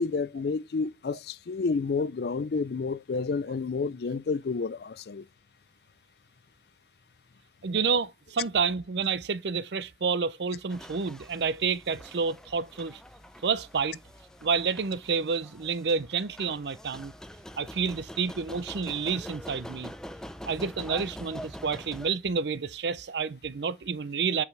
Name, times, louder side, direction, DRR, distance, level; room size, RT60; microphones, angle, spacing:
voice 1, 0.0-5.2, left 4 dB, 65° left, 0.4 m, -30 dB
voice 2, 7.6-13.0 13.4-14.0 14.4-17.1 17.6-19.9 20.5-24.4, right 5 dB, 80° right, 0.6 m, -29 dB
sound 1, 10.7-22.1, equal, 5° left, 0.4 m, -45 dB
8.1 x 4.9 x 3.3 m
head